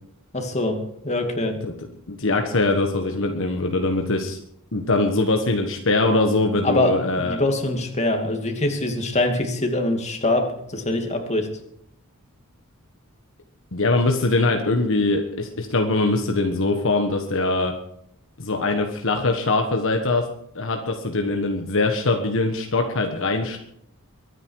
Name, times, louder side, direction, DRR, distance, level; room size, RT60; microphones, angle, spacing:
voice 1, 0.3-1.6 6.6-6.9 7.2-11.5, left 2 dB, 30° left, 4 dB, 2.5 m, -23 dB
voice 2, 2.1-4.4 4.7-7.4 13.7-17.7 18.4-20.3 20.5-23.6, left 2 dB, 65° left, 4 dB, 1.4 m, -22 dB
23.0 x 9.8 x 4.8 m, 0.72 s
head